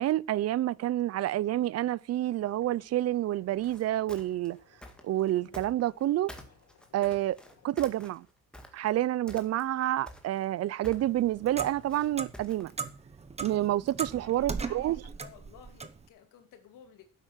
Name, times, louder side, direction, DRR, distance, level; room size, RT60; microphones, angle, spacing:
voice 1, 0.0-4.6 5.0-6.3 6.9-7.4 7.6-8.3 8.7-12.7 13.4-15.0, right 14 dB, 55° right, 0.5 m, -28 dB
Boiling, 2.3-8.0, left 7 dB, 65° left, 4.9 m, -63 dB
sound 1, 3.5-6.0 6.3-9.0 9.3-9.8 10.1-12.8, left 1 dB, 5° left, 2.0 m, -48 dB
Clock, 11.0-16.0, right 5 dB, 20° right, 1.0 m, -38 dB
voice 2, 14.2-17.0, left 9 dB, 90° left, 2.7 m, -54 dB
10.0 x 8.2 x 7.4 m
cardioid pair, 145°, 31 cm